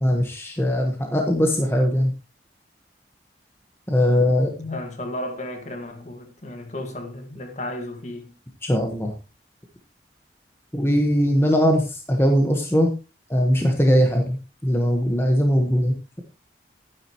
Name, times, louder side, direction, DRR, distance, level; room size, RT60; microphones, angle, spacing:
voice 1, 0.0-2.1 3.9-4.5 8.6-9.1 10.7-12.9 13.3-14.4 14.6-16.2, equal, 15° left, 1.3 m, -20 dB
voice 2, 4.6-8.3, left 1 dB, 40° left, 1.8 m, -33 dB
11.5 x 10.0 x 3.0 m
head